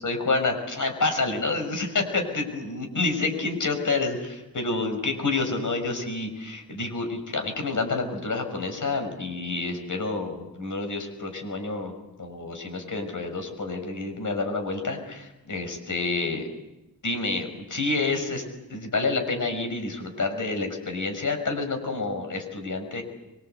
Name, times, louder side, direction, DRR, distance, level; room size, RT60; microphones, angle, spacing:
voice 1, 0.0-11.9 12.2-16.5 17.0-18.4 18.7-23.0, left 3 dB, 55° left, 5 dB, 6.0 m, -28 dB
26.0 x 23.5 x 8.1 m, 0.95 s
wide cardioid pair, 125°, 36 cm